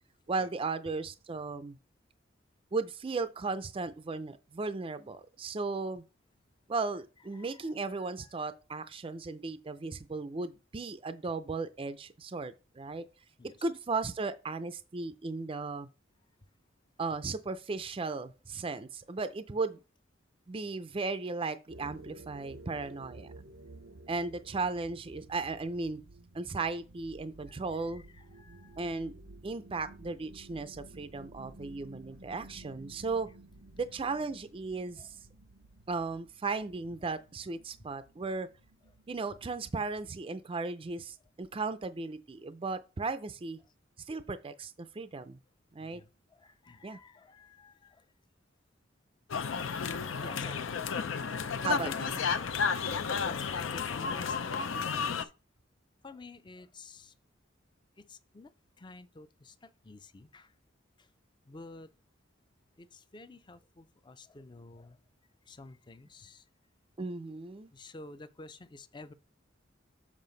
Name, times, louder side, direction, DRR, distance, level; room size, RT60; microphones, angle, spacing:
voice 1, 0.3-1.8 2.7-6.0 6.7-13.0 13.6-15.9 17.0-19.8 20.5-23.3 24.1-26.0 26.3-28.0 28.8-29.1 29.4-33.3 33.8-35.1 35.9-38.5 39.1-43.6 44.1-45.4 45.7-46.0 46.8-47.0 51.6-52.2 67.0-67.7, right 3 dB, 30° right, 0.4 m, -36 dB
voice 2, 7.3-8.3 13.4-13.6 27.4-29.0 35.0-35.1 45.8-48.1 50.2-50.6 52.6-52.9 53.2-55.3 56.0-57.1 58.0-58.5 58.8-60.5 61.0-61.1 61.5-61.9 62.8-65.0 65.5-66.5 67.7-69.1, left 3 dB, 25° left, 0.5 m, -51 dB
sound 1, 21.7-40.1, right 2 dB, 90° right, 0.8 m, -53 dB
sound 2, 49.3-55.2, left 6 dB, 75° left, 0.6 m, -32 dB
7.5 x 4.9 x 3.9 m
head